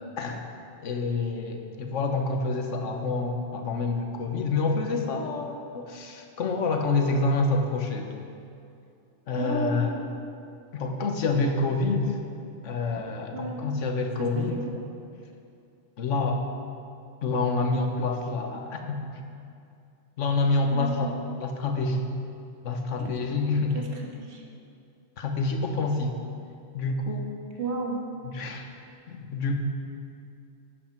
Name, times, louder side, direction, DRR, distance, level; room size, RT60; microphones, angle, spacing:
voice 1, 0.8-8.1 9.3-9.9 10.7-12.1 12.6-14.6 16.0-16.5 17.2-19.2 20.2-22.0 22.6-23.8 25.2-26.1 26.7-27.3 28.2-28.7 29.1-29.6, left 3 dB, 85° left, 4 dB, 1.3 m, -27 dB
voice 2, 9.4-10.0 13.3-13.6 14.2-14.8 20.7-21.1 23.0-23.2 23.7-24.4 27.6-28.0, right 3 dB, 65° right, 0 dB, 1.6 m, -33 dB
11.5 x 8.5 x 4.5 m, 2.5 s
omnidirectional pair, 1.2 m